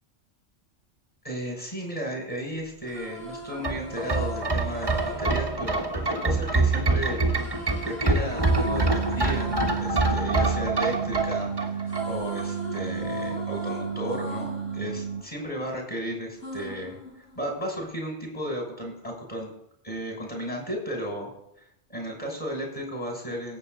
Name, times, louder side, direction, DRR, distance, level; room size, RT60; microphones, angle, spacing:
voice 1, 1.2-19.5 19.8-21.3 21.9-23.6, equal, 30° left, 0 dB, 6.4 m, -34 dB
sound 1, 2.7-6.7 7.3-11.4 11.7-15.9 16.4-17.8, left 1 dB, 65° left, 6.2 m, -39 dB
sound 2, 3.5-12.4 12.8-12.9, right 3 dB, 20° right, 1.2 m, -26 dB
sound 3, 8.6-15.2, right 7 dB, 60° right, 0.9 m, -32 dB
17.5 x 8.5 x 4.0 m, 0.76 s
omnidirectional pair, 1.2 m